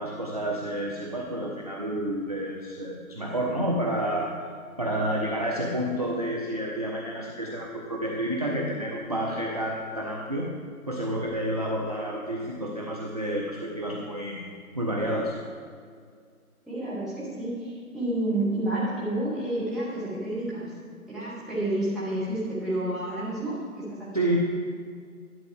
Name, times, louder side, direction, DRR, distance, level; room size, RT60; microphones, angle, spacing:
voice 1, 0.0-4.3 4.8-10.5 10.9-14.5 14.7-15.3 24.1-24.4, right 1 dB, 30° right, -1 dB, 0.4 m, -29 dB
voice 2, 16.7-20.7 21.1-24.3, right 1 dB, ahead, -12 dB, 1.0 m, -30 dB
11.0 x 7.3 x 3.4 m, 2.1 s
figure-of-eight pair, 145°, 44 cm